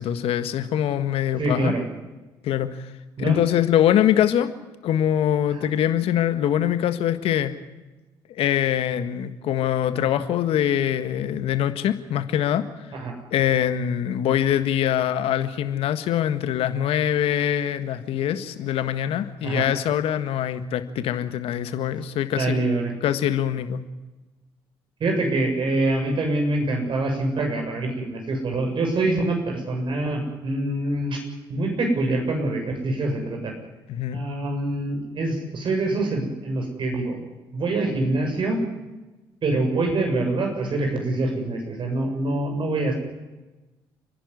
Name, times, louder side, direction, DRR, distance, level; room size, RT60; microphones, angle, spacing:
voice 1, 0.0-1.7 2.4-2.9 3.2-4.5 4.8-7.5 8.3-12.6 13.3-22.6 23.0-23.8 33.9-34.2, left 10 dB, 70° left, 10 dB, 1.6 m, -23 dB
voice 2, 1.4-1.8 3.2-3.4 12.9-13.1 19.4-19.6 22.4-22.9 25.0-31.2 31.5-33.5 34.1-37.2 37.5-38.6 39.4-43.0, right 2 dB, 55° right, 3 dB, 7.3 m, -25 dB
30.0 x 11.0 x 9.9 m, 1.1 s
hypercardioid pair, 50°, 10 cm